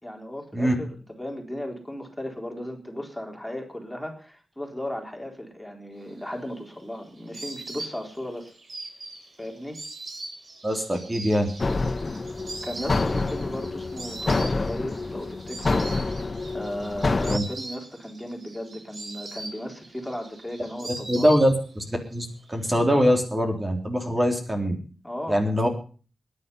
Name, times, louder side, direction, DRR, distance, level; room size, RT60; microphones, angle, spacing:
voice 1, 0.0-8.6 9.4-9.8 12.6-15.8 16.5-21.3 25.0-25.5, left 1 dB, 5° left, 2 dB, 4.0 m, -35 dB
Insect, 6.2-21.9 22.2-23.0, right 2 dB, 60° right, 4.2 m, -41 dB
voice 2, 10.6-11.5 17.3-17.4 21.1-21.5 21.9-24.8 25.3-25.7, equal, 25° right, 2 dB, 3.9 m, -23 dB
sound 1, 11.6-17.4, left 3 dB, 40° left, 1.2 m, -27 dB
21.0 x 10.5 x 5.5 m, 0.40 s
wide cardioid pair, 80°, 0 cm